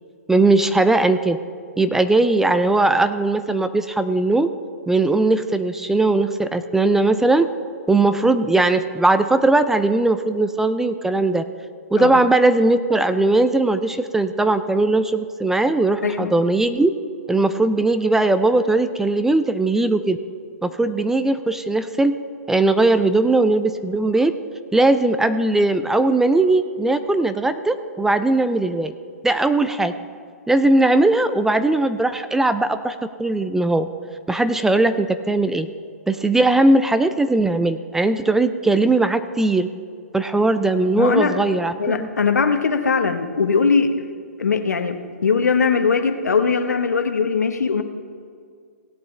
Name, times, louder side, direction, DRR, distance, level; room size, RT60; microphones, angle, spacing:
voice 1, 0.3-1.4 1.8-4.5 4.9-7.5 7.9-11.4 11.9-16.9 17.3-20.2 20.6-22.2 22.5-24.3 24.7-28.9 29.2-29.9 30.5-33.9 34.3-35.7 36.1-39.7 40.1-42.1, right 2 dB, 5° right, 11 dB, 0.3 m, -19 dB
voice 2, 16.0-16.3 40.9-41.4 41.8-43.9 44.4-47.8, left 5 dB, 85° left, 8 dB, 1.0 m, -20 dB
17.5 x 8.3 x 3.3 m, 2.1 s
hypercardioid pair, 135°, 9 cm